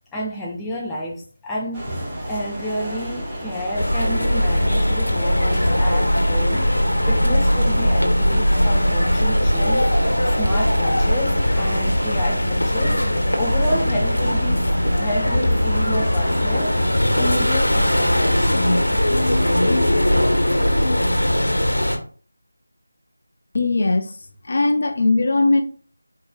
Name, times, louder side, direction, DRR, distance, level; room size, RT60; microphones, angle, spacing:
voice 1, 0.1-1.9 2.3-6.7 7.1-9.9 10.3-13.0 13.3-18.5, left 1 dB, 5° left, 0.4 m, -30 dB
sound 1, 1.7-20.7, equal, 15° right, 1.2 m, -32 dB
sound 2, 3.7-22.0, equal, 80° left, 1.2 m, -19 dB
voice 2, 23.5-24.1 24.4-25.6, left 2 dB, 45° left, 0.6 m, -19 dB
4.6 x 4.5 x 2.4 m
figure-of-eight pair, 165°, 0 cm